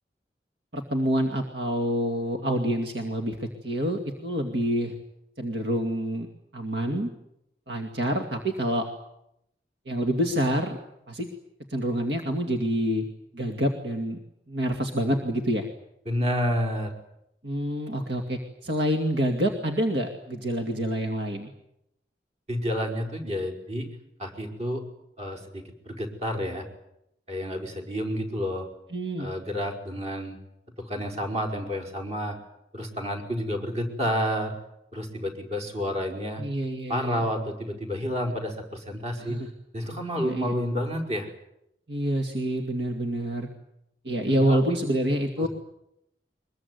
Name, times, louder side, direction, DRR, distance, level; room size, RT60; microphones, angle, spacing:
voice 1, 0.7-4.9 5.4-6.3 6.5-7.1 7.7-8.8 9.9-10.8 11.1-11.3 11.7-13.1 13.3-14.2 14.5-15.7 17.4-21.5 28.9-29.3 36.4-37.3 39.2-39.5 40.2-40.5 41.9-43.5 44.0-45.5, equal, 80° right, 4 dB, 2.5 m, -27 dB
voice 2, 16.1-16.9 22.5-23.9 24.2-24.8 25.2-26.7 27.3-28.7 29.2-30.4 30.8-32.4 32.7-34.5 34.9-36.4 36.9-39.4 39.7-41.3 44.3-44.6, equal, 40° right, 3 dB, 5.2 m, -30 dB
23.5 x 22.0 x 9.6 m, 0.79 s
head